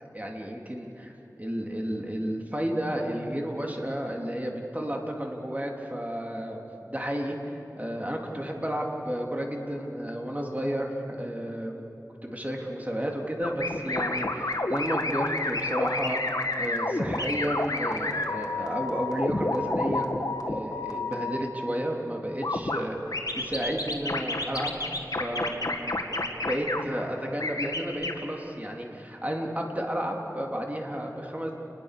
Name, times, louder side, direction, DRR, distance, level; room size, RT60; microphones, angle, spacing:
voice 1, 0.1-1.1 1.4-6.6 6.9-11.9 12.2-16.2 16.6-20.1 20.4-23.0 23.4-24.8 25.2-25.6 26.4-31.5, equal, 25° right, 0 dB, 3.4 m, -32 dB
sound 1, 13.4-21.4 22.4-22.8 23.1-26.8 27.4-28.1, left 2 dB, 75° left, 2.0 m, -29 dB
29.5 x 21.0 x 6.9 m, 2.9 s
wide cardioid pair, 45°, 6 cm